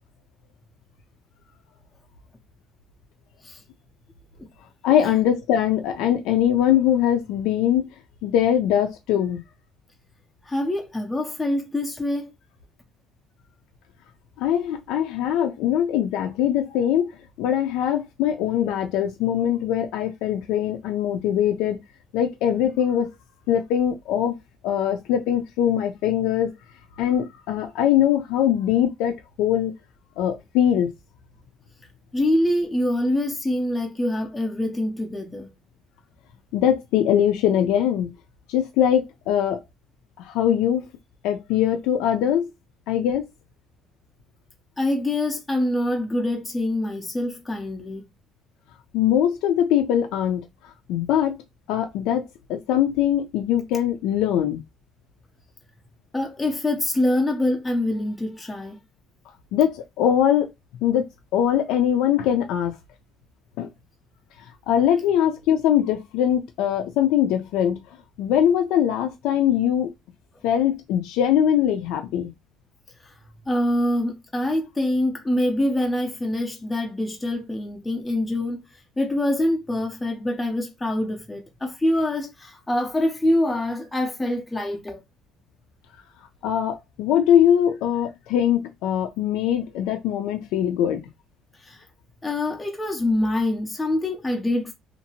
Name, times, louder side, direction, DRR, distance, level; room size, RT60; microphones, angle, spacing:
voice 1, 4.8-7.9 8.2-9.4 14.4-17.1 17.4-21.8 22.1-23.1 23.5-24.4 24.6-26.5 27.0-29.7 30.2-30.9 36.5-38.1 38.5-39.6 40.2-40.9 41.2-42.5 42.9-43.3 48.9-50.4 50.9-51.4 51.7-52.2 52.5-54.6 59.5-60.5 60.8-61.1 61.3-62.8 63.6-63.7 64.7-67.8 68.2-69.9 70.4-72.3 86.4-91.0, left 10 dB, 80° left, 0.4 m, -22 dB
voice 2, 10.5-12.3 32.1-35.5 44.8-48.0 56.1-58.8 73.0-73.1 73.5-78.6 79.0-85.0 91.6-91.8 92.2-94.7, left 1 dB, 10° left, 0.5 m, -25 dB
2.8 x 2.5 x 2.7 m
cardioid pair, 145°, 0 cm